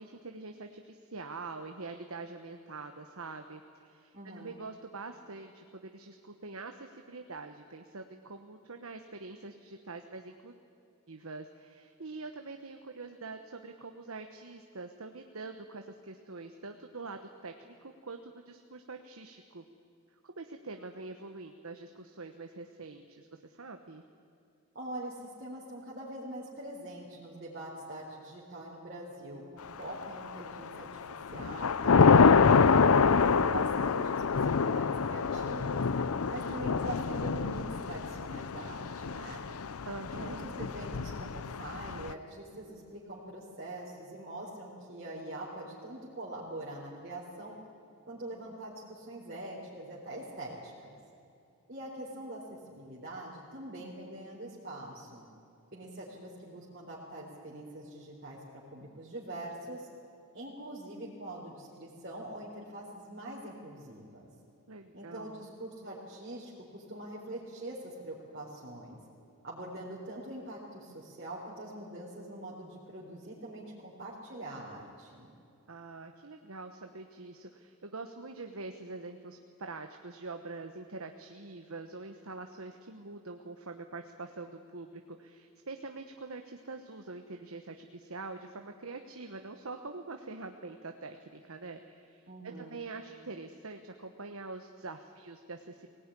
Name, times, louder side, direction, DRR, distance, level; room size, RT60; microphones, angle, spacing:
voice 1, 0.0-10.5 11.1-19.6 20.2-24.0 39.8-40.5 64.7-65.4 75.7-95.9, right 3 dB, 75° right, 5 dB, 1.2 m, -45 dB
voice 2, 4.1-4.6 24.7-31.0 31.3-35.8 36.3-39.4 40.1-47.6 48.1-51.0 51.7-55.3 55.7-59.9 60.3-64.3 64.9-69.0 69.4-75.3 92.3-92.8, right 1 dB, 45° right, -6 dB, 4.1 m, -43 dB
Thunder / Rain, 30.0-30.6 31.0-42.1, left 5 dB, 80° left, 0.6 m, -26 dB
22.5 x 18.5 x 10.0 m, 2.6 s
head